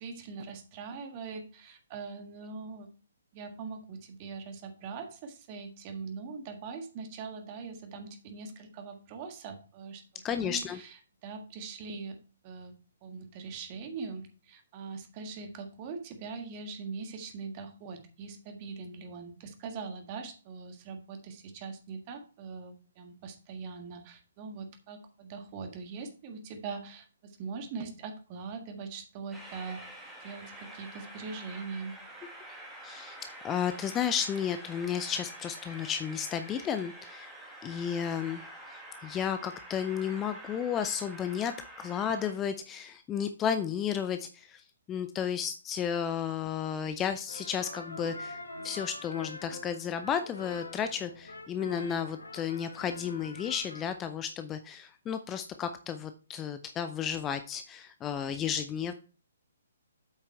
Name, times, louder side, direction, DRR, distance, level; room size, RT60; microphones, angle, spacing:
voice 1, 0.0-2.9 3.3-10.9 11.2-12.2 12.4-12.7 13.0-29.9 30.2-31.9, right 5 dB, 30° right, 5 dB, 1.7 m, -42 dB
voice 2, 10.2-10.8 32.8-33.2 33.4-37.3 37.6-58.9, left 8 dB, 15° left, 9 dB, 0.5 m, -33 dB
Train, 29.3-42.3, right 1 dB, 5° right, 1.7 m, -47 dB
sound 1, 47.3-53.8, left 2 dB, 70° left, 1.3 m, -44 dB
8.2 x 5.8 x 4.4 m, 0.37 s
figure-of-eight pair, 130°, 0 cm